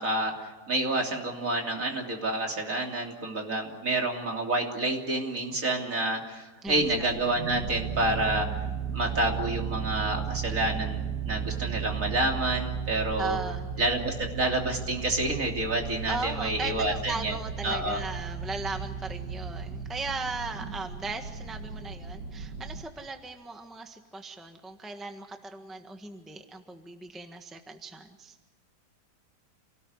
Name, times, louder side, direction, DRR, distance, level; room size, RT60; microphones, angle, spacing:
voice 1, 0.0-8.6 8.9-13.4 13.8-17.4 17.6-18.0, right 1 dB, 50° right, 1 dB, 3.6 m, -29 dB
voice 2, 6.6-7.1 13.2-13.7 16.0-28.4, right 3 dB, ahead, 5 dB, 1.4 m, -37 dB
sound 1, 6.7-22.8, right 7 dB, 70° right, 2.6 m, -35 dB
28.0 x 18.5 x 9.7 m, 1.2 s
omnidirectional pair, 1.8 m